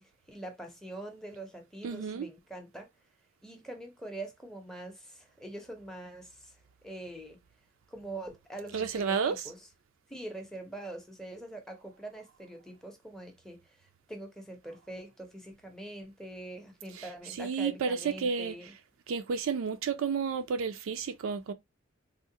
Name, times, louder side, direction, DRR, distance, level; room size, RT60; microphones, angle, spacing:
voice 1, 0.0-2.9 3.4-6.6 6.8-7.4 7.9-9.7 10.1-13.6 14.1-18.7, right 2 dB, 5° left, 0.5 m, -44 dB
voice 2, 1.8-2.3 8.7-9.3 17.4-18.6 19.1-21.5, right 6 dB, 70° right, 0.4 m, -31 dB
3.5 x 2.0 x 2.7 m
head